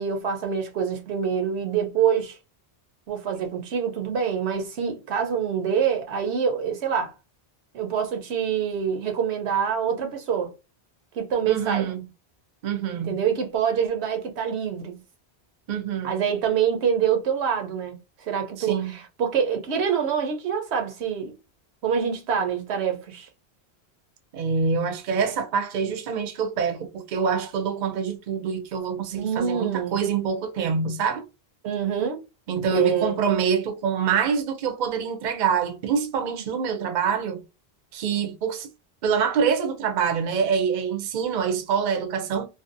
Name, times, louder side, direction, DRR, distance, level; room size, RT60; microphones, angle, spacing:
voice 1, 0.0-2.4 3.1-7.1 7.7-10.5 11.1-11.9 13.0-15.0 16.0-17.9 18.2-21.3 21.8-23.3 29.1-30.0 31.6-32.2 32.7-33.2 36.3-36.5, right 7 dB, 85° right, 0.9 m, -25 dB
voice 2, 11.5-12.0 12.6-13.2 15.7-16.2 18.6-18.9 24.3-31.2 32.5-37.4 37.9-38.7 39.0-42.5, right 6 dB, 55° right, 0.6 m, -25 dB
2.6 x 2.0 x 2.4 m
omnidirectional pair, 1.1 m